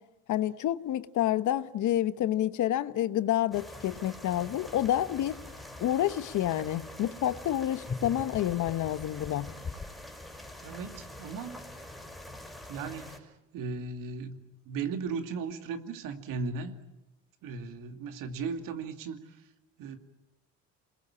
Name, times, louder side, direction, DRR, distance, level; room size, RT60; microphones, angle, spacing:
voice 1, 0.3-5.4 5.8-9.5, left 12 dB, 60° left, 1.2 m, -28 dB
sound 1, 3.5-13.2, left 1 dB, ahead, 5.1 m, -45 dB
sound 2, 7.8-10.1, left 4 dB, 30° left, 6.6 m, -39 dB
voice 2, 10.6-11.6 12.7-16.8 17.4-19.4 19.8-20.0, right 5 dB, 75° right, 2.5 m, -37 dB
28.0 x 21.0 x 8.8 m
supercardioid pair, 85°, 33 cm